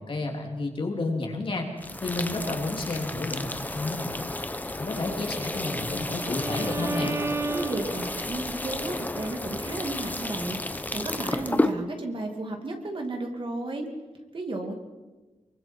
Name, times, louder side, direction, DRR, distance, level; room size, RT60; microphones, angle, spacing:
voice 1, 0.0-1.7 2.0-4.2 4.7-7.2, left 2 dB, 45° left, 1 dB, 3.1 m, -31 dB
sound 1, 1.8-11.7, left 2 dB, 15° left, 0.9 m, -32 dB
Bowed string instrument, 5.4-8.5, right 3 dB, 20° right, 1.0 m, -34 dB
voice 2, 7.5-13.9 14.3-14.7, right 2 dB, 45° right, 3 dB, 2.6 m, -33 dB
24.5 x 23.0 x 4.6 m, 1.2 s
wide cardioid pair, 150°, 12 cm